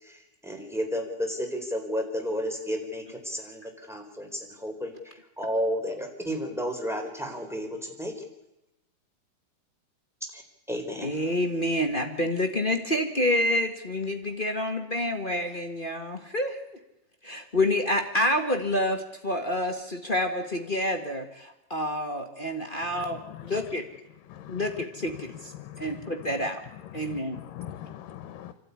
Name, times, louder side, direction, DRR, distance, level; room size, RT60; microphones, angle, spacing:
voice 1, 0.0-8.3 10.3-10.4 10.7-11.1, equal, ahead, 3 dB, 3.8 m, -32 dB
voice 2, 11.0-16.7 17.2-23.8 24.5-26.6 26.9-27.4, left 1 dB, 30° left, 5 dB, 0.9 m, -28 dB
voice 3, 22.8-23.8 24.2-28.5, left 11 dB, 85° left, 11 dB, 2.6 m, -43 dB
28.0 x 12.5 x 9.8 m, 0.93 s
omnidirectional pair, 3.9 m